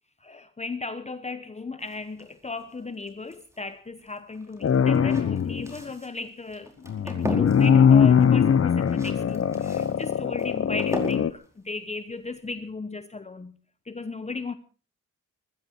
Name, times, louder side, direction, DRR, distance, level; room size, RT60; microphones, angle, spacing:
voice 1, 0.2-6.7 7.0-13.6 13.9-14.5, left 3 dB, 20° left, 0.9 m, -36 dB
sound 1, 1.8-12.7, right 1 dB, 10° right, 4.6 m, -40 dB
sound 2, 4.6-5.7 6.9-11.3, left 7 dB, 45° left, 0.8 m, -21 dB
21.5 x 15.0 x 4.4 m
wide cardioid pair, 140°, 31 cm